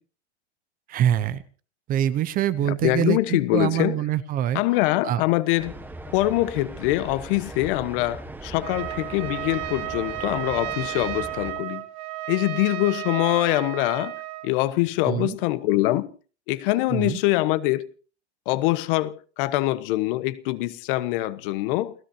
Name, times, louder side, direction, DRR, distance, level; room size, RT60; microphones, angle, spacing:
voice 1, 0.9-1.4 1.9-4.6 5.0-5.2 15.0-15.4 16.9-17.2, right 11 dB, 25° right, 0.7 m, -24 dB
voice 2, 2.6-4.0 4.5-5.8 6.1-11.8 12.3-14.2 14.4-16.1 16.5-17.9 18.5-21.9, left 18 dB, 50° left, 1.2 m, -24 dB
sound 1, 5.6-11.5, right 2 dB, 5° right, 1.3 m, -39 dB
Trumpet, 8.6-14.5, right 17 dB, 60° right, 2.4 m, -33 dB
29.5 x 16.5 x 2.8 m
supercardioid pair, 150°, 34 cm